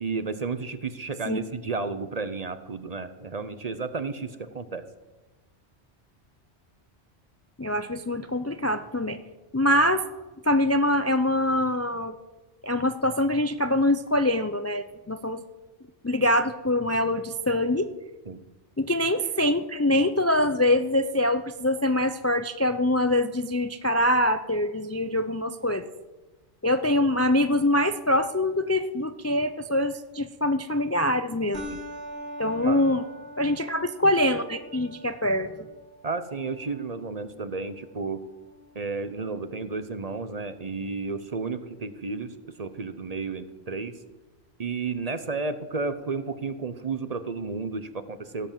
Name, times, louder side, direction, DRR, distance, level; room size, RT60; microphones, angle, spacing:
voice 1, 0.0-4.8 18.3-18.4 31.7-31.8 32.6-32.8 36.0-38.2 38.7-43.9 44.6-48.5, right 4 dB, 40° right, 11 dB, 0.8 m, -32 dB
voice 2, 7.6-9.2 9.5-10.0 10.4-12.1 12.6-15.4 16.0-17.9 18.8-25.9 26.6-31.7 32.4-33.0 33.4-35.7, left 1 dB, 20° left, 9 dB, 0.4 m, -24 dB
sound 1, 31.5-40.5, equal, 75° right, 2.6 m, -44 dB
16.5 x 7.9 x 7.4 m, 1.2 s
omnidirectional pair, 1.1 m